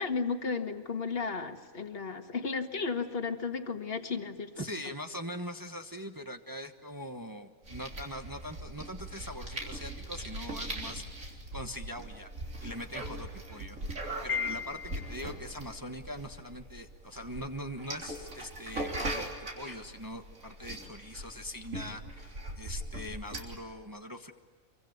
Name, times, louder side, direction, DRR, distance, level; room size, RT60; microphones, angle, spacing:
voice 1, 0.0-4.5, left 5 dB, 45° left, 7 dB, 1.9 m, -34 dB
voice 2, 4.6-12.3 12.6-19.2 19.5-24.3, equal, 15° right, 5 dB, 1.2 m, -42 dB
sound 1, 7.6-23.6, right 1 dB, 65° right, 3.8 m, -40 dB
Piano, 14.3-15.3, left 7 dB, 65° left, 1.9 m, -35 dB
26.5 x 24.0 x 9.3 m, 1.5 s
omnidirectional pair, 1.5 m